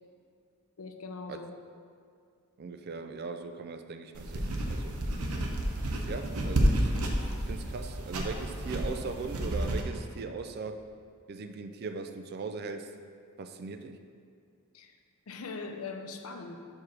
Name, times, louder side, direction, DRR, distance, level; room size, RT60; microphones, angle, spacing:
voice 1, 0.8-1.5 14.7-14.9 15.3-16.6, left 4 dB, 75° left, 5 dB, 0.6 m, -41 dB
voice 2, 2.6-5.0 6.1-6.9 7.5-10.8 11.3-12.9 13.4-14.0, right 4 dB, 45° right, 8 dB, 0.3 m, -39 dB
sound 1, 4.1-9.8, right 1 dB, 90° right, 0.8 m, -30 dB
4.8 x 4.6 x 6.0 m, 2.2 s
head